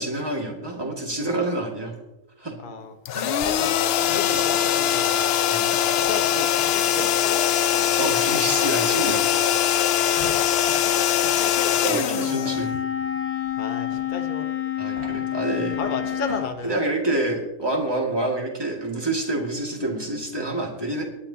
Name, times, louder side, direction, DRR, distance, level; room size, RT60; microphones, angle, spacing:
voice 1, 0.0-1.9 2.4-2.5 3.1-3.5 4.0-4.2 5.5-5.6 8.0-9.3 10.1-10.3 11.8-12.7 14.8-15.8 16.6-21.0, right 2 dB, 15° right, 0 dB, 2.2 m, -27 dB
voice 2, 2.6-2.9 3.2-3.7 4.1-5.3 5.9-7.4 10.1-11.7 13.6-14.4 15.8-16.8, left 4 dB, 35° left, 4 dB, 1.1 m, -33 dB
sound 1, 3.1-13.0, left 10 dB, 65° left, 0.6 m, -22 dB
sound 2, 3.6-4.5 5.0-5.6 6.0-6.6 7.0-7.2 7.7-7.9 8.9-9.5 10.6-10.7 11.7-12.7 13.1-13.2 13.9-14.3 14.8-15.1 15.7-15.8 16.0-16.5, right 3 dB, 75° right, 3.4 m, -42 dB
Wind instrument woodwind instrument, 12.1-16.5, left 11 dB, 90° left, 1.8 m, -28 dB
23.5 x 10.0 x 2.9 m, 1.0 s
omnidirectional pair, 1.5 m